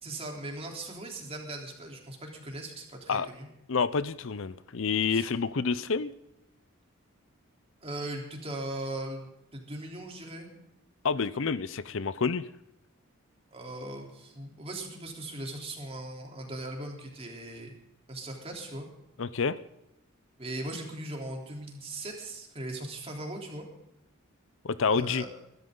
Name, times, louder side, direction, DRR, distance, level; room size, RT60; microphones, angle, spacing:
voice 1, 0.0-3.5 5.1-5.3 7.8-10.5 13.5-17.7 18.1-18.9 20.4-23.7 24.9-25.3, right 1 dB, 30° right, 1 dB, 3.6 m, -39 dB
voice 2, 3.7-6.1 11.0-12.5 19.2-19.6 24.6-25.2, left 5 dB, 65° left, 16 dB, 0.6 m, -28 dB
23.0 x 13.0 x 3.9 m, 0.83 s
head